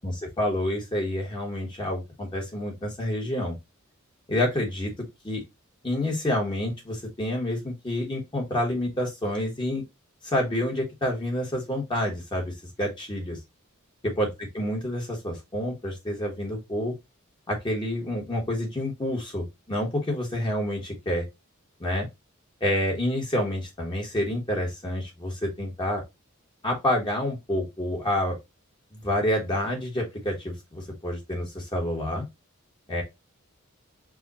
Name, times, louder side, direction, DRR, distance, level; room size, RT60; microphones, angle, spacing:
voice 1, 0.4-3.5 4.3-4.9 5.2-5.4 5.8-9.8 10.2-13.4 14.0-16.9 17.5-21.3 21.8-22.1 22.6-26.0 26.6-28.4 28.9-32.2 32.9-33.0, left 1 dB, 25° left, -1 dB, 1.2 m, -28 dB
4.9 x 2.3 x 4.1 m, 0.21 s
head